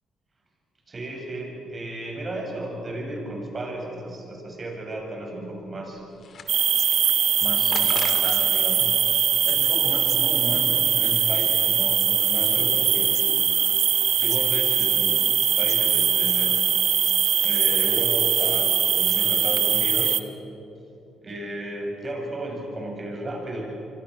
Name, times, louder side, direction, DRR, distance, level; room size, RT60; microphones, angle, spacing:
voice 1, 0.9-6.0 7.4-9.0 9.5-13.4 14.2-16.6 17.4-20.2 21.2-23.6, right 1 dB, 35° right, 0 dB, 7.6 m, -34 dB
sound 1, 5.7-7.0 7.7-8.6 8.9-10.2, left 6 dB, 55° left, 2.7 m, -38 dB
sound 2, 6.5-20.2, right 8 dB, 60° right, 1.1 m, -21 dB
26.5 x 24.5 x 6.5 m, 2.8 s
cardioid pair, 90°, 0 cm